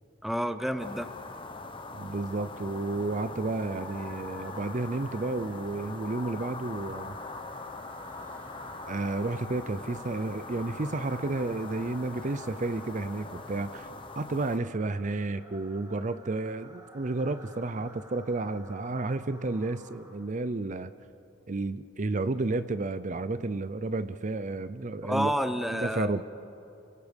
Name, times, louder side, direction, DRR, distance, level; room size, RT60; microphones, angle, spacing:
voice 1, 0.2-1.1 25.0-26.2, equal, ahead, 10 dB, 0.8 m, -29 dB
sound 1, 0.8-14.6, left 3 dB, 25° left, 1.1 m, -42 dB
sound 2, 1.6-20.4, right 1 dB, 15° right, 2.3 m, -53 dB
voice 2, 1.9-7.2 8.9-13.9 14.2-20.9 21.5-25.3 25.7-26.2, right 2 dB, 40° right, 13 dB, 0.6 m, -31 dB
29.5 x 23.5 x 5.3 m, 2.7 s
head